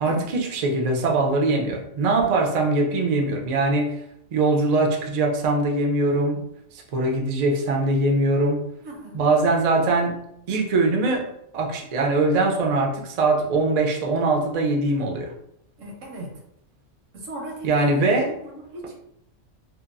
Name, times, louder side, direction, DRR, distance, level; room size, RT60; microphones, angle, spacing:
voice 1, 0.0-4.0 4.3-6.4 6.7-8.6 9.1-10.2 10.5-11.2 11.5-15.3 17.6-18.3, right 2 dB, 70° right, 1 dB, 0.4 m, -22 dB
voice 2, 8.8-9.2 15.8-16.3 17.1-18.0 18.4-19.0, right 1 dB, 85° right, 0 dB, 1.1 m, -37 dB
2.8 x 2.2 x 2.4 m, 0.77 s
omnidirectional pair, 1.3 m